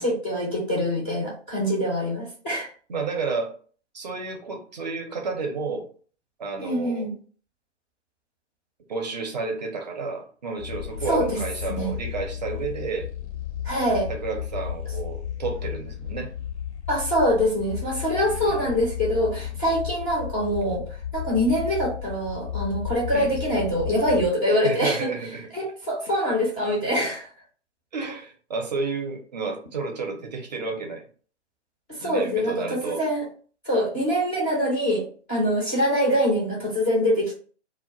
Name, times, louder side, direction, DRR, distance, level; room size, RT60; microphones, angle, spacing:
voice 1, 0.0-2.7 6.6-7.1 11.1-11.3 11.7-11.9 13.6-14.1 16.9-20.8 21.1-25.1 25.5-27.3 31.9-33.2 33.6-37.3, equal, 10° left, -7 dB, 0.4 m, -24 dB
voice 2, 2.9-3.6 3.9-5.9 6.4-7.1 8.9-13.1 14.1-16.3 18.2-18.8 23.1-23.3 24.4-25.5 27.9-31.1 32.0-33.0, right 4 dB, 35° right, 3 dB, 0.5 m, -31 dB
sound 1, 10.6-24.3, left 10 dB, 70° left, 0.6 m, -34 dB
2.2 x 2.1 x 3.7 m, 0.42 s
figure-of-eight pair, 130°, 36 cm